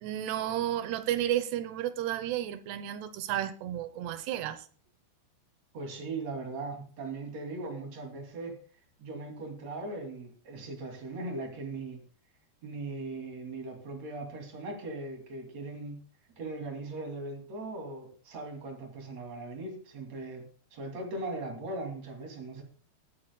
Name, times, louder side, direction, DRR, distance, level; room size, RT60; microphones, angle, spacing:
voice 1, 0.0-4.7, right 12 dB, 85° right, 2.9 m, -32 dB
voice 2, 5.7-8.6 9.0-12.0 12.6-16.0 16.4-20.5 20.7-22.6, right 2 dB, 45° right, 3.4 m, -39 dB
20.5 x 8.5 x 2.2 m
omnidirectional pair, 4.7 m